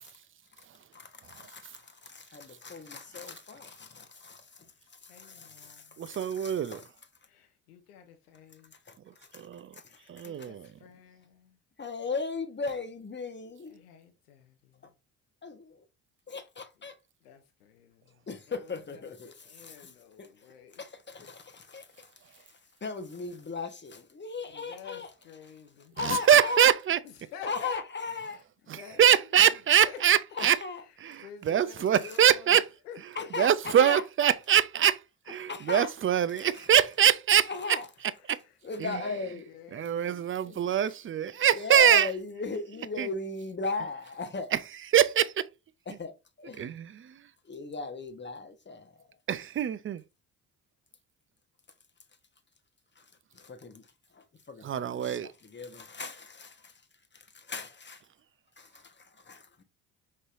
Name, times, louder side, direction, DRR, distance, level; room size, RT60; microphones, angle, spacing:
voice 1, 0.9-4.4 5.0-6.8 8.9-9.0 9.3-9.4 10.2-10.5 11.8-13.8 15.4-15.8 16.3-17.0 18.3-19.9 20.2-20.3 20.8-22.1 22.8-25.1 26.0-26.7 27.5-28.4 30.4-30.8 33.1-34.0 35.5-35.9 37.5-37.9 38.6-39.5 41.5-44.5 45.9-46.1 46.4-46.7 47.5-48.9 53.0-53.1 53.6-53.7 54.5-55.2 55.4-56.7 57.1-58.0 58.6-58.9 59.2-59.6, left 4 dB, 25° left, 1.0 m, -37 dB
voice 2, 5.1-5.9 7.2-8.7 9.9-10.5 10.8-11.2 13.7-14.5 17.2-18.0 18.5-20.8 22.2-22.5 24.4-26.0 27.3-27.8 28.1-28.4 28.7-29.0 29.8-30.0 31.2-32.6 32.9-33.3 38.2-38.4 38.8-39.2 39.5-40.7, left 7 dB, 90° left, 0.6 m, -48 dB
voice 3, 6.0-6.8 9.3-9.7 10.1-10.5 26.0-27.0 28.7-30.6 31.0-32.7 33.4-35.0 35.3-37.8 38.3-38.4 38.8-39.0 39.7-42.1 43.0-43.1 44.5-44.6 44.9-45.5 46.6-47.2 49.3-50.0 54.6-55.3, right 9 dB, 30° right, 0.4 m, -24 dB
5.2 x 3.2 x 2.5 m
hypercardioid pair, 45°, 45 cm